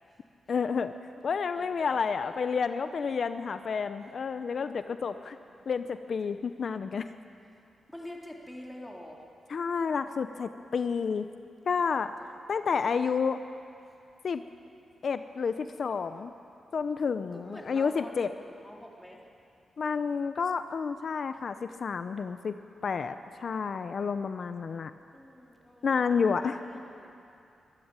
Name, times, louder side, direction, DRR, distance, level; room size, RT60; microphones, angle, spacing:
voice 1, 0.5-0.9 1.2-5.4 5.7-7.1 9.5-11.3 11.7-12.1 12.5-13.4 14.2-14.4 15.0-16.3 16.7-18.3 19.8-22.5 22.8-23.1 23.4-24.9 25.8-26.6, left 5 dB, 60° left, 10 dB, 0.8 m, -30 dB
voice 2, 1.5-2.5 5.0-5.4 6.3-6.5 7.9-9.2 11.8-12.1 12.5-12.7 17.3-19.2 25.1-27.1, left 1 dB, 10° left, -1 dB, 3.6 m, -47 dB
24.0 x 14.0 x 9.0 m, 2.6 s
cardioid pair, 65°, 0 cm